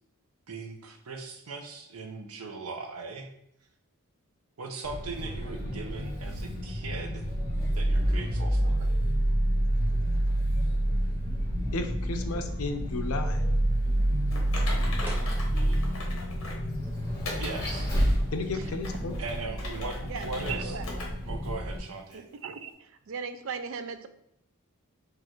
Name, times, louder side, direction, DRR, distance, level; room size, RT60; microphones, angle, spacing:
voice 1, 0.5-3.3 4.6-7.2 7.7-8.9 17.4-17.9 19.2-20.8 21.3-22.2, right 3 dB, 90° right, 0.7 m, -39 dB
Vehicle, 4.8-21.8, right 1 dB, 20° left, 1.8 m, -28 dB
voice 2, 11.7-13.4 18.3-19.2 20.7-20.8, left 2 dB, 80° left, 0.6 m, -33 dB
Typing, 14.3-16.7 17.2-17.6 18.1-18.2 18.7-20.5 20.8-21.1 21.4-21.5 22.1-22.2, left 2 dB, 60° left, 1.2 m, -39 dB
sound 1, 15.0-15.3 18.2-18.8 20.3-21.1, right 2 dB, 10° right, 0.7 m, -46 dB
voice 3, 20.1-20.9 22.1-22.7 23.1-24.1, right 6 dB, 65° right, 0.4 m, -37 dB
4.8 x 2.5 x 4.4 m
head